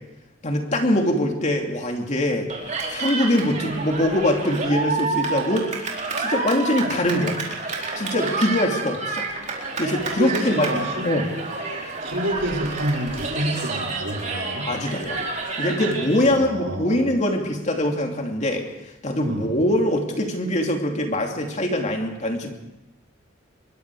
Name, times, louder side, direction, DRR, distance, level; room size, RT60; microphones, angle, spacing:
voice 1, 0.4-2.5 2.9-5.7 6.2-7.4 8.0-9.3 9.8-10.7 11.0-11.3 14.7-15.2 15.6-18.6 19.0-22.5, left 1 dB, 35° left, 2 dB, 2.8 m, -23 dB
Cheering, 2.5-16.2, right 3 dB, 40° right, 4.5 m, -29 dB
voice 2, 10.2-11.1 12.0-14.7 16.2-16.9 19.2-19.5, right 1 dB, 70° right, -2 dB, 5.9 m, -28 dB
25.0 x 22.0 x 4.9 m, 0.93 s
head